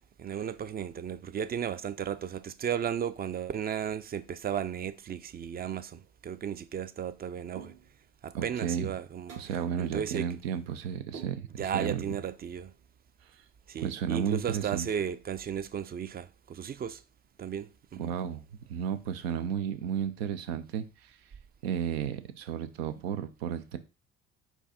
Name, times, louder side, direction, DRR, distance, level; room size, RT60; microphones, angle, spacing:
voice 1, 0.2-7.7 8.2-9.3 9.8-10.3 11.6-12.7 13.7-17.0 17.4-18.1, right 8 dB, 30° right, 0.4 m, -34 dB
sound 1, 7.5-8.1 9.3-9.7 11.1-11.8, right 6 dB, 55° right, 1.3 m, -47 dB
voice 2, 8.3-8.9 9.4-12.0 13.8-14.9 18.0-18.4 18.7-21.2 21.6-23.8, right 8 dB, 90° right, 0.6 m, -33 dB
4.6 x 2.7 x 4.2 m
hypercardioid pair, 65°, 30 cm